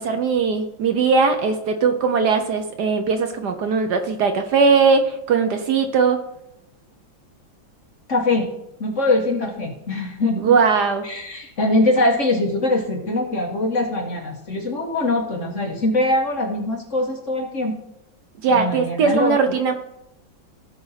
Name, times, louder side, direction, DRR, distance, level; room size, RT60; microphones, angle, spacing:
voice 1, 0.0-6.2 10.4-11.0 18.4-19.7, right 5 dB, 65° right, 7 dB, 1.3 m, -19 dB
voice 2, 8.1-8.5 8.8-10.6 11.0-17.8 18.5-19.4, left 2 dB, 45° left, 2 dB, 1.4 m, -22 dB
16.0 x 5.4 x 4.1 m, 0.83 s
omnidirectional pair, 2.1 m